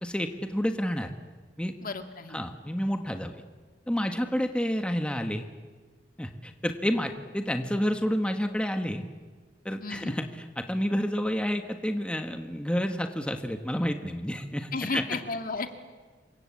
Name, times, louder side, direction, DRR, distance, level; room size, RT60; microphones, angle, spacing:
voice 1, 0.0-1.1 1.6-1.7 2.3-3.3 3.9-5.4 6.2-9.0 9.6-10.3 10.6-15.2, equal, 5° left, 6 dB, 1.5 m, -29 dB
voice 2, 1.8-2.4 9.8-10.1 14.7-15.8, left 3 dB, 50° left, 7 dB, 2.2 m, -33 dB
27.5 x 24.5 x 8.5 m, 1.4 s
head